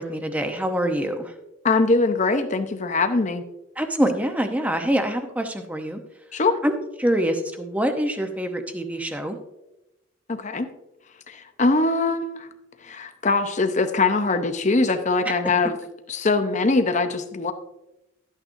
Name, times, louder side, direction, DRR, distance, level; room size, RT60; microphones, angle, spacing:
voice 1, 0.0-1.3 3.8-6.0 6.6-9.4 15.2-15.3, right 1 dB, 5° right, 5 dB, 0.8 m, -25 dB
voice 2, 1.6-3.4 6.3-6.6 10.3-10.7 11.3-12.5 12.8-15.8 16.1-17.5, left 3 dB, 35° left, 8 dB, 0.7 m, -22 dB
12.5 x 9.0 x 2.6 m, 0.93 s
head